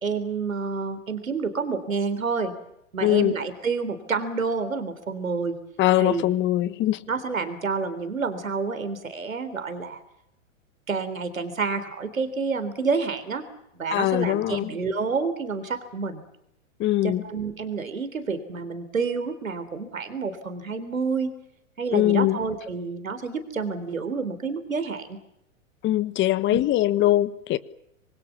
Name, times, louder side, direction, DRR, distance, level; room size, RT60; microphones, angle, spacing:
voice 1, 0.0-2.5 2.9-5.6 6.0-6.3 7.1-10.0 10.9-13.5 13.7-16.2 17.0-21.3 21.8-25.2 26.5-26.6, right 4 dB, 90° right, 3.7 m, -29 dB
voice 2, 3.0-3.3 5.8-7.0 13.9-14.7 16.8-17.2 21.9-22.4 25.8-27.6, left 14 dB, 30° left, 1.4 m, -22 dB
26.5 x 25.0 x 7.3 m
hypercardioid pair, 110°, 39 cm